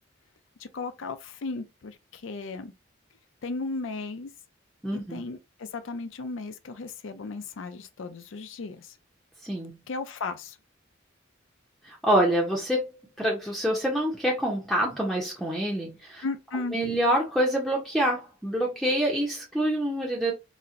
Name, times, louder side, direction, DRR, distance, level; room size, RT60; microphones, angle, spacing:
voice 1, 0.6-2.7 3.4-4.3 4.9-8.9 9.9-10.6 16.2-16.8, left 3 dB, 75° left, 0.5 m, -35 dB
voice 2, 4.8-5.2 9.4-9.8 11.8-16.2 16.7-20.3, right 1 dB, ahead, 0.6 m, -26 dB
4.1 x 2.1 x 2.5 m
head